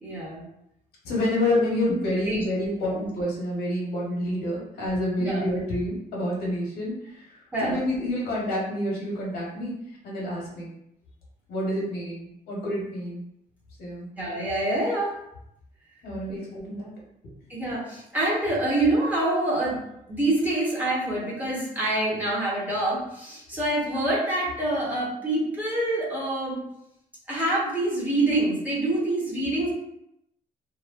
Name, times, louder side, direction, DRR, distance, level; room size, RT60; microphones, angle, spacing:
voice 1, 0.0-0.5 2.3-2.4 5.2-5.5 7.5-7.8 14.2-15.1 16.3-16.4 17.5-19.8 20.1-26.6 27.3-29.7, right 1 dB, 10° right, -6 dB, 0.8 m, -26 dB
voice 2, 1.0-9.7 10.0-10.7 11.5-13.2 13.8-14.1 16.0-16.9, left 1 dB, 90° left, -4 dB, 1.1 m, -28 dB
2.9 x 2.2 x 2.4 m, 0.79 s
cardioid pair, 145°, 16 cm